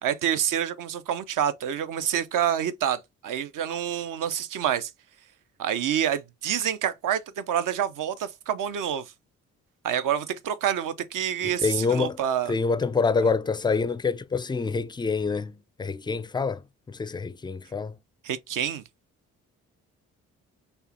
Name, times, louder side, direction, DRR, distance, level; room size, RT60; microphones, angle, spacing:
voice 1, 0.0-4.9 5.6-9.0 9.8-12.5 13.2-13.3 18.2-18.8, right 9 dB, 60° right, 0.7 m, -27 dB
voice 2, 11.4-12.2 12.5-16.6 16.9-17.9, left 4 dB, 15° left, 0.4 m, -26 dB
5.5 x 2.2 x 3.7 m
hypercardioid pair, 45°, 36 cm